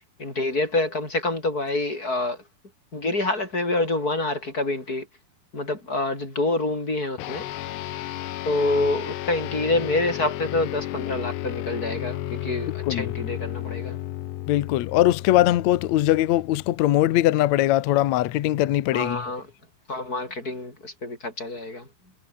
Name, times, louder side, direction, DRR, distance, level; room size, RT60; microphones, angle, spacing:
voice 1, 0.2-2.4 2.9-5.1 5.5-7.5 8.5-14.0 18.9-19.5 19.9-21.9, left 2 dB, 20° left, 7.4 m, -27 dB
sound 1, 7.2-16.9, left 14 dB, 90° left, 3.5 m, -33 dB
voice 2, 14.5-19.2, left 14 dB, 75° left, 1.7 m, -21 dB
omnidirectional pair, 4.7 m